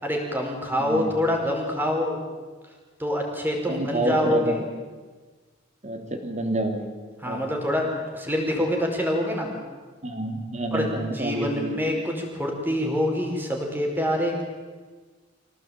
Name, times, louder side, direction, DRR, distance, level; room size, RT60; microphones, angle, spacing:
voice 1, 0.0-2.2 3.0-4.6 7.2-9.5 10.7-10.9 11.1-14.4, left 1 dB, 10° right, 1 dB, 5.1 m, -26 dB
voice 2, 0.8-1.2 3.7-4.6 5.8-6.9 7.2-7.4 8.5-8.6 10.0-11.8, right 2 dB, 35° right, 5 dB, 3.4 m, -28 dB
26.0 x 17.5 x 9.1 m, 1.4 s
head